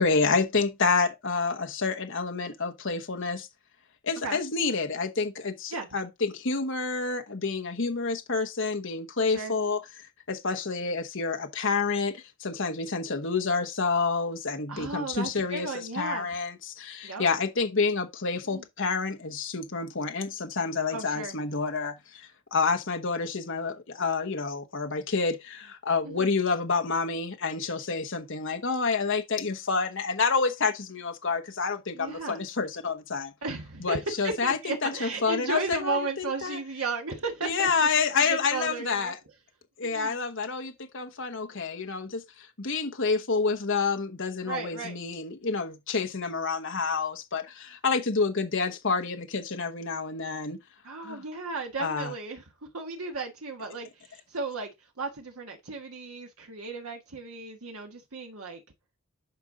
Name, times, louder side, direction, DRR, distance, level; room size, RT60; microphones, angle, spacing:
voice 1, 0.0-3.5 4.0-9.8 10.3-33.3 33.8-36.6 37.4-39.2 39.8-50.6 51.0-51.2 51.8-52.1, left 4 dB, 60° left, 1.2 m, -28 dB
voice 2, 14.7-16.3 17.0-17.3 18.5-18.6 20.9-21.3 26.0-26.3 31.9-32.4 33.4-34.0 34.2-37.7 38.2-39.1 39.8-40.2 44.4-45.0 50.8-54.7 55.0-58.6, right 3 dB, 80° right, 1.5 m, -34 dB
9.1 x 5.3 x 3.8 m
head